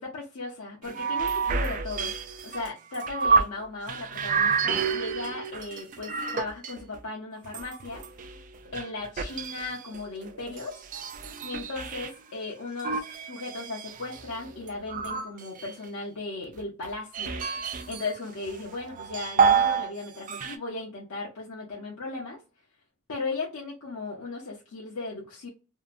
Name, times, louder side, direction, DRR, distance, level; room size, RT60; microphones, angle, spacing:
voice 1, 0.0-2.1 2.4-8.0 8.7-10.8 11.4-17.3 17.9-22.4 23.1-25.5, left 3 dB, 75° left, 0.7 m, -36 dB
sound 1, 0.8-3.6 3.9-7.0 7.4-12.1 12.8-15.9 16.6-18.1 18.4-19.9 20.2-20.6, right 5 dB, 40° right, 0.3 m, -28 dB
2.7 x 2.2 x 2.4 m
head